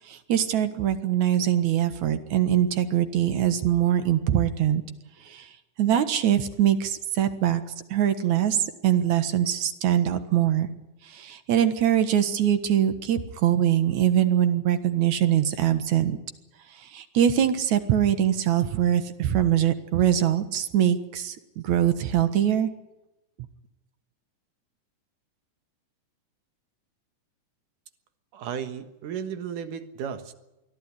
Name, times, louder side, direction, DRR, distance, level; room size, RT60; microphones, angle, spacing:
voice 1, 0.1-4.8 5.3-5.5 5.8-7.6 7.9-10.7 11.1-16.2 16.9-22.7, right 10 dB, 65° right, 10 dB, 2.7 m, -23 dB
voice 2, 28.3-30.3, right 8 dB, 80° right, 9 dB, 3.0 m, -34 dB
23.0 x 15.0 x 9.8 m, 0.96 s
omnidirectional pair, 3.6 m